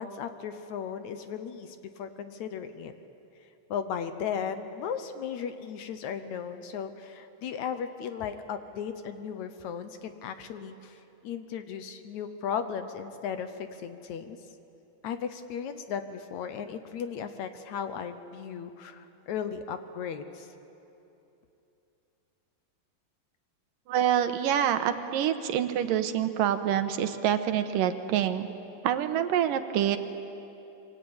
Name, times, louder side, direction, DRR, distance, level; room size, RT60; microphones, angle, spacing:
voice 1, 0.0-2.9 3.7-11.0 11.2-14.4 15.0-20.5, left 7 dB, 70° left, 9 dB, 2.1 m, -36 dB
voice 2, 23.9-28.5 28.8-30.0, right 10 dB, 85° right, 9 dB, 2.7 m, -26 dB
27.0 x 24.0 x 8.9 m, 2.9 s
omnidirectional pair, 3.9 m